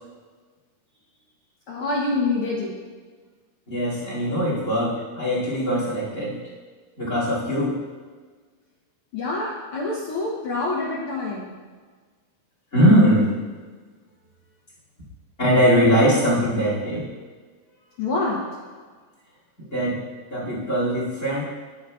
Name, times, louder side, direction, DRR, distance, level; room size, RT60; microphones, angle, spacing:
voice 1, 1.7-2.8 9.1-11.5 18.0-18.4, left 3 dB, 75° left, -4 dB, 1.2 m, -26 dB
voice 2, 3.7-6.4 7.0-7.8 12.7-13.3 15.4-17.1 19.7-20.0 20.3-21.4, equal, 25° left, -6 dB, 2.4 m, -21 dB
11.5 x 7.4 x 2.3 m, 1.4 s
omnidirectional pair, 3.8 m